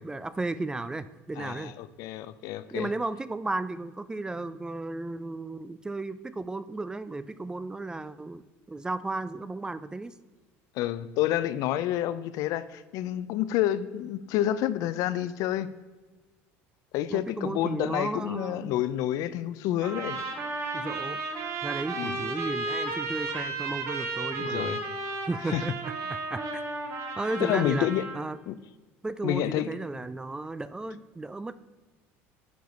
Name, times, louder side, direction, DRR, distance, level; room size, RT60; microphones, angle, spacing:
voice 1, 0.0-1.7 2.7-10.1 17.1-18.8 20.7-21.2 21.6-24.8 25.3-25.7 26.1-26.4 27.2-27.9 28.1-28.4 29.0-31.6, right 2 dB, 10° right, 0.3 m, -34 dB
voice 2, 1.4-2.9 10.8-15.7 16.9-20.2 22.0-22.3 24.4-24.8 25.5-25.6 27.4-28.1 28.5-28.6 29.2-29.7, left 12 dB, 65° left, 0.5 m, -29 dB
sound 1, 19.8-28.2, right 3 dB, 50° right, 1.4 m, -33 dB
9.4 x 4.6 x 5.3 m
supercardioid pair, 105°, 6 cm